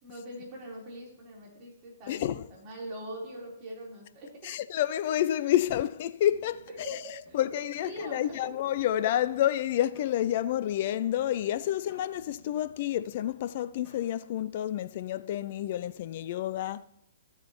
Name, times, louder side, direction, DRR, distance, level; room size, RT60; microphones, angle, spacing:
voice 1, 0.0-4.5 6.8-7.4 7.8-8.4, right 1 dB, 30° right, 3.4 m, -42 dB
voice 2, 2.1-2.5 4.4-7.0 7.3-16.8, left 12 dB, 40° left, 0.3 m, -29 dB
sound 1, 6.3-14.1, left 1 dB, 10° left, 3.6 m, -59 dB
13.0 x 7.9 x 2.9 m
figure-of-eight pair, 120°, 0 cm